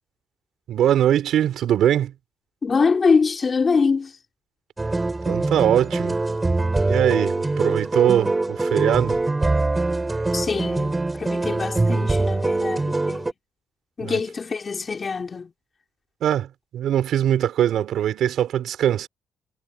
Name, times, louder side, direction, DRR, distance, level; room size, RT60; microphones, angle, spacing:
voice 1, 0.7-2.1 5.2-6.2 6.8-9.2 14.0-14.2 16.2-19.1, right 10 dB, 75° right, 4.8 m, -21 dB
voice 2, 2.6-4.1 10.3-13.3 14.0-15.5, left 5 dB, 35° left, 4.3 m, -24 dB
sound 1, 4.8-13.3, right 2 dB, 20° right, 4.9 m, -23 dB
cardioid pair, 90°, 0 cm